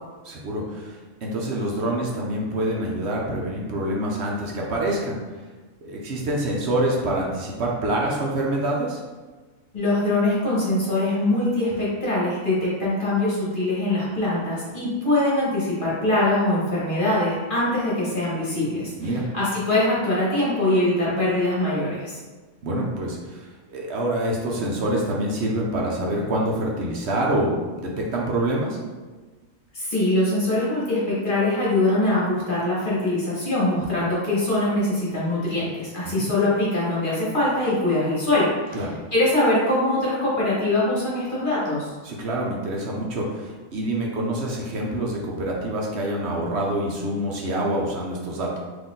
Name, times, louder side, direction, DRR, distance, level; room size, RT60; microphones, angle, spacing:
voice 1, 0.2-5.2 5.8-9.0 19.0-19.2 22.6-23.5 23.7-28.8 36.0-36.5 38.7-39.0 42.0-48.6, right 1 dB, 60° right, -2 dB, 0.9 m, -26 dB
voice 2, 9.7-22.1 29.7-38.8 39.1-41.9, left 1 dB, 40° left, -8 dB, 1.4 m, -23 dB
4.1 x 2.9 x 3.7 m, 1.3 s
omnidirectional pair, 1.5 m